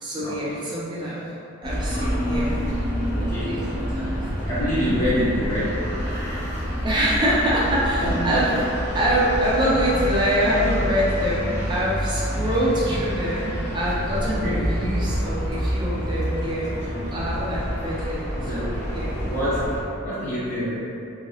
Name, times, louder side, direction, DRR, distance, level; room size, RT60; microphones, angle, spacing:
voice 1, 0.0-1.3 1.6-2.6 3.9-4.3 4.9-5.0 6.1-6.3 6.8-8.5 8.9-18.7 18.9-19.2, equal, 20° right, -7 dB, 0.4 m, -25 dB
sound 1, 1.6-19.8, equal, 10° left, 1.0 m, -27 dB
voice 2, 3.1-3.7 4.4-6.6 8.0-8.5 14.4-14.7 16.9-17.5 18.4-18.8 19.3-20.7, equal, 45° left, -16 dB, 0.9 m, -27 dB
2.9 x 2.7 x 2.9 m, 2.7 s
head